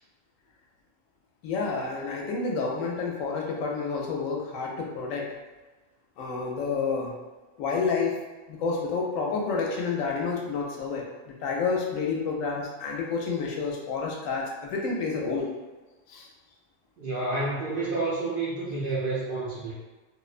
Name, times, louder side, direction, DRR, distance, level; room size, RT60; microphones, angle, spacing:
voice 1, 1.4-5.3 6.2-7.1 7.6-8.2 8.5-15.5 16.1-16.3, left 4 dB, 75° left, -1 dB, 0.9 m, -29 dB
voice 2, 17.0-19.7, right 3 dB, 65° right, -8 dB, 0.5 m, -29 dB
2.6 x 2.1 x 2.4 m, 1.2 s
omnidirectional pair, 1.4 m